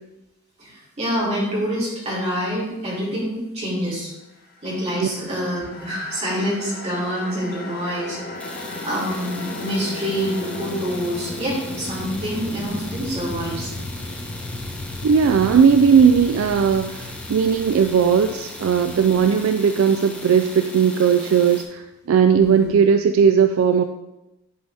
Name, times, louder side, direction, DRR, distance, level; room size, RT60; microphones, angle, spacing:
voice 1, 0.6-4.1 4.6-8.2 8.4-13.7 22.3-22.7, equal, 30° right, -6 dB, 2.8 m, -26 dB
sound 1, 4.7-19.9, left 2 dB, 40° left, 0.7 m, -35 dB
sound 2, 8.4-21.6, left 1 dB, 5° left, 0.7 m, -38 dB
voice 2, 15.0-23.8, right 6 dB, 65° right, 8 dB, 0.3 m, -17 dB
11.0 x 4.1 x 3.4 m, 0.96 s
head